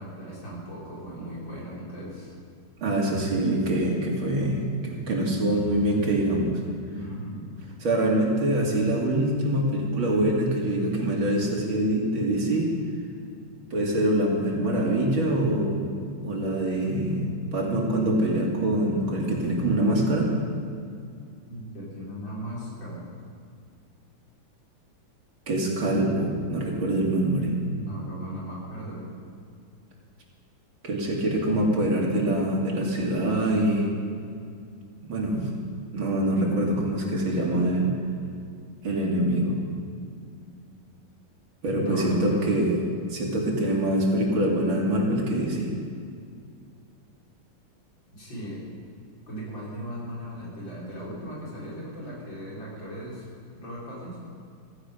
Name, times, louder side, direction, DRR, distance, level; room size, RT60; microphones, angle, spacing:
voice 1, 0.0-2.3 6.9-7.5 21.5-23.1 27.7-29.1 41.7-42.6 48.1-48.6 49.3-53.2 53.6-54.2, right 1 dB, 70° left, -7 dB, 5.5 m, -37 dB
voice 2, 2.8-6.6 7.8-12.7 13.7-15.9 16.2-20.3 25.5-27.5 30.8-33.9 35.0-35.5 35.9-37.9 38.8-39.5 41.6-42.8 43.1-45.7, right 1 dB, 85° right, -2 dB, 3.4 m, -24 dB
16.0 x 15.0 x 5.3 m, 2.3 s
omnidirectional pair, 2.1 m